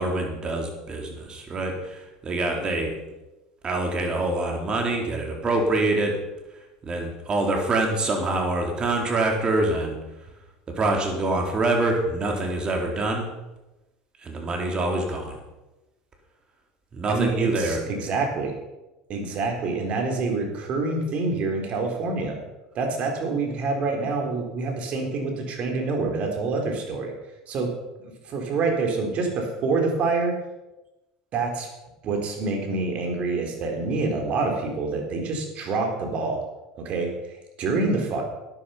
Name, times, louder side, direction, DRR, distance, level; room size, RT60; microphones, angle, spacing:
voice 1, 0.0-2.9 3.6-6.2 6.9-10.0 10.7-13.3 14.2-15.4 16.9-17.8, right 2 dB, 30° right, 2 dB, 3.9 m, -25 dB
voice 2, 17.1-18.6 19.1-22.4 22.7-27.1 27.5-27.7 28.2-30.4 31.3-31.7 32.0-36.4 36.8-38.2, right 3 dB, 50° right, 3 dB, 3.9 m, -26 dB
12.5 x 10.5 x 5.7 m, 1.0 s
hypercardioid pair, 90°, 3 cm